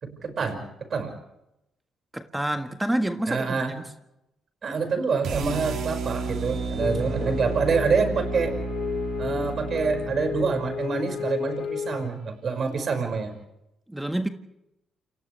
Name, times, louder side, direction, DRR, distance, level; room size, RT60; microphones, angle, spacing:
voice 1, 0.0-1.1 3.3-3.8 4.6-8.5 9.2-13.3, right 5 dB, 50° right, 5.9 m, -26 dB
voice 2, 2.1-3.8 13.9-14.3, right 1 dB, 10° right, 1.6 m, -28 dB
sound 1, 5.2-11.4, right 3 dB, 75° right, 3.2 m, -32 dB
sound 2, 6.8-12.1, left 7 dB, 75° left, 1.3 m, -33 dB
29.0 x 28.0 x 3.4 m
cardioid pair, 85°, 0 cm